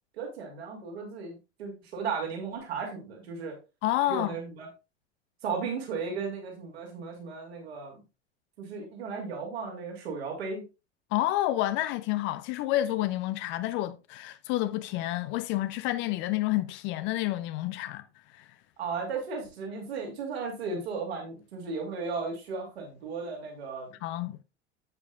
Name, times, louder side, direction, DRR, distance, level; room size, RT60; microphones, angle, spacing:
voice 1, 0.2-3.6 4.1-4.7 5.4-8.0 8.6-10.6 18.8-23.9, right 5 dB, 65° right, 2.7 m, -35 dB
voice 2, 3.8-4.3 11.1-18.0 18.3-18.4 24.0-24.4, left 15 dB, 35° left, 0.5 m, -29 dB
9.6 x 8.3 x 2.4 m
figure-of-eight pair, 80°, 34 cm